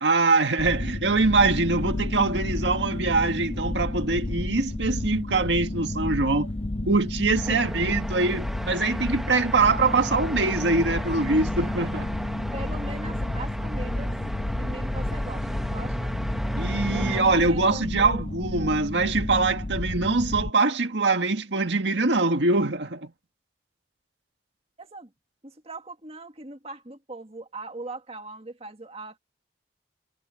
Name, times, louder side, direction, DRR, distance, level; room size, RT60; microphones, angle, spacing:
voice 1, 0.0-6.5 6.9-12.1 16.5-23.1, right 3 dB, 80° right, 1.8 m, -23 dB
sound 1, 0.6-20.5, left 1 dB, 30° left, 0.6 m, -31 dB
sound 2, 7.4-17.2, equal, ahead, 1.1 m, -33 dB
voice 2, 7.4-7.8 12.5-14.1 14.5-16.1 16.9-18.2 18.6-18.8 24.8-25.1 25.4-29.2, right 2 dB, 35° right, 1.8 m, -40 dB
head